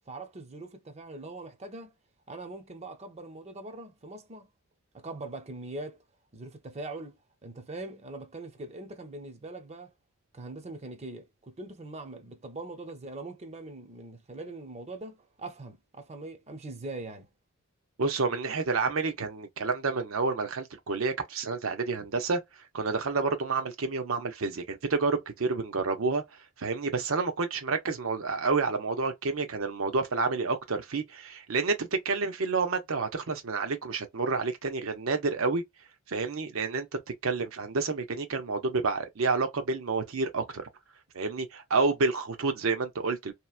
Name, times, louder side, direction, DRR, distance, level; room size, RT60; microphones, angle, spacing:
voice 1, 0.1-1.9 2.3-4.5 4.9-6.0 6.3-7.2 7.4-9.9 10.3-17.3, right 2 dB, 30° right, 0.6 m, -42 dB
voice 2, 18.0-22.4 22.7-26.2 26.6-35.6 36.1-40.6 41.1-43.3, right 4 dB, 85° right, 0.8 m, -29 dB
2.9 x 2.1 x 2.4 m
head